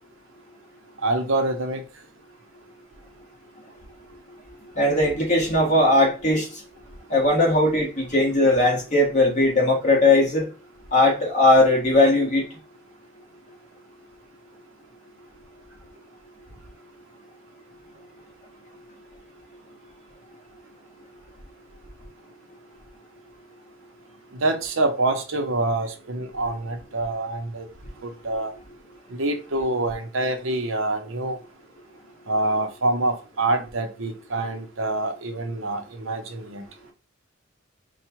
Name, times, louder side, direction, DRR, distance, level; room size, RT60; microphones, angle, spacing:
voice 1, 1.0-1.8 24.3-27.7 28.0-28.5 29.1-31.4 32.3-36.6, right 2 dB, 70° right, 0.9 m, -26 dB
voice 2, 4.7-6.6 7.1-10.5 10.9-12.5, left 2 dB, 35° left, 1.7 m, -19 dB
4.6 x 2.4 x 4.5 m
head